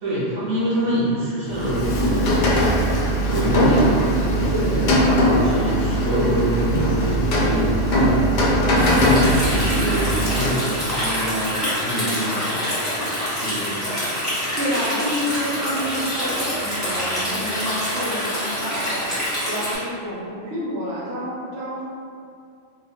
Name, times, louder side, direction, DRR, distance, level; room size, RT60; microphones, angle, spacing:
voice 1, 0.0-2.6 3.2-8.2 8.9-12.6 13.3-14.0, equal, 40° right, -10 dB, 0.9 m, -25 dB
Rain, 1.5-10.7, equal, 60° left, 0.5 m, -20 dB
voice 2, 4.4-4.9 6.1-6.4 9.2-9.3 14.5-21.8, equal, 75° right, -9 dB, 1.1 m, -29 dB
Stream, 8.8-19.8, equal, ahead, 0.9 m, -26 dB
2.4 x 2.3 x 3.4 m, 2.4 s
omnidirectional pair, 1.2 m